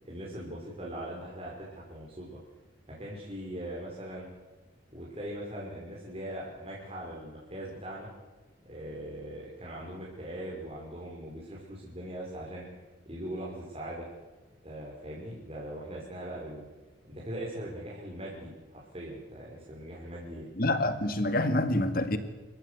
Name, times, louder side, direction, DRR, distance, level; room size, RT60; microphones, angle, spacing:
voice 1, 0.0-2.4 2.9-4.3 4.9-8.1 8.6-12.6 13.1-14.1 14.6-16.7 17.1-20.5, right 1 dB, 30° right, -5 dB, 5.7 m, -40 dB
voice 2, 20.6-22.2, left 1 dB, 50° left, 10 dB, 2.0 m, -27 dB
28.5 x 15.0 x 8.4 m, 1.2 s
head